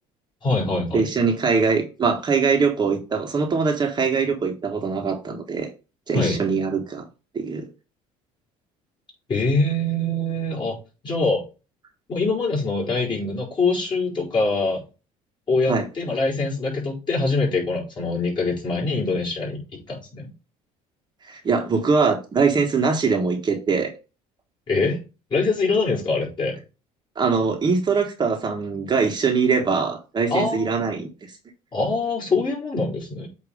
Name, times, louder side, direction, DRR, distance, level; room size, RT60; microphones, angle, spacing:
voice 1, 0.4-1.1 6.1-6.4 9.3-10.8 11.0-11.4 12.1-14.8 15.5-20.3 24.7-25.0 25.3-26.6 30.3-30.8 31.7-33.3, left 3 dB, 35° left, -2 dB, 4.2 m, -24 dB
voice 2, 0.9-5.7 6.1-7.0 7.3-7.7 15.7-15.8 21.3-23.9 27.1-31.1, right 5 dB, 30° right, 2 dB, 1.3 m, -22 dB
8.2 x 3.0 x 5.0 m, 0.31 s
supercardioid pair, 105°, 14 cm